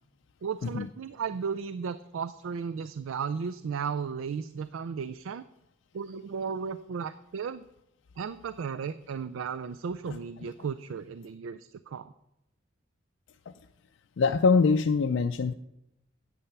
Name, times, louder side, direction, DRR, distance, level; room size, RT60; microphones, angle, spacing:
voice 1, 0.4-5.4 5.9-7.7 8.2-12.1, right 6 dB, 85° right, 13 dB, 0.4 m, -35 dB
voice 2, 14.2-15.5, left 4 dB, 65° left, 7 dB, 0.4 m, -24 dB
9.9 x 8.5 x 5.8 m, 0.86 s
head